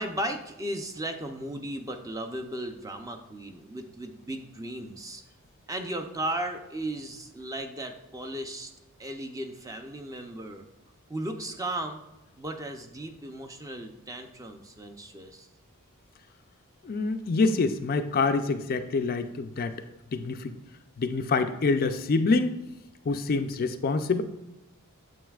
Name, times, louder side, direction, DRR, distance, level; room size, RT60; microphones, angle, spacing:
voice 1, 0.0-5.2 5.7-8.7 9.0-10.6 11.1-12.0 12.4-15.5, right 1 dB, 15° right, 5 dB, 0.5 m, -36 dB
voice 2, 16.8-19.7 20.1-20.6 21.0-22.6 23.1-24.2, left 3 dB, 40° left, 8 dB, 0.4 m, -26 dB
9.1 x 7.1 x 2.3 m, 0.98 s
head